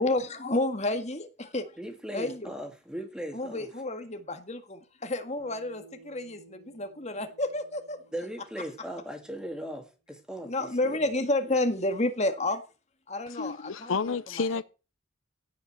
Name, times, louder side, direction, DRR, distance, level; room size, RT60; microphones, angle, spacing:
voice 1, 0.0-1.7 2.1-2.5 3.3-8.0 10.4-12.6 13.1-14.2, left 2 dB, 35° left, 1.8 m, -30 dB
voice 2, 1.8-3.7 8.1-11.0, equal, 5° right, 2.4 m, -38 dB
Bass guitar, 5.4-9.8, right 3 dB, 90° right, 5.7 m, -56 dB
voice 3, 13.3-14.6, left 4 dB, 85° left, 0.7 m, -30 dB
16.5 x 5.8 x 7.6 m
head